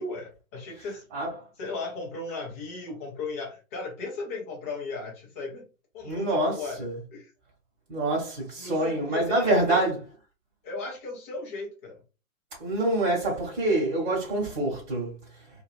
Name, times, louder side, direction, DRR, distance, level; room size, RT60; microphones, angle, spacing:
voice 1, 0.0-1.0 1.6-5.7 5.9-7.3 8.6-9.8 10.6-12.0, left 3 dB, 10° left, 0.5 m, -36 dB
voice 2, 6.0-6.9 7.9-10.0 12.6-15.1, right 2 dB, 40° right, 1.4 m, -26 dB
2.7 x 2.6 x 2.5 m
hypercardioid pair, 135°, 42 cm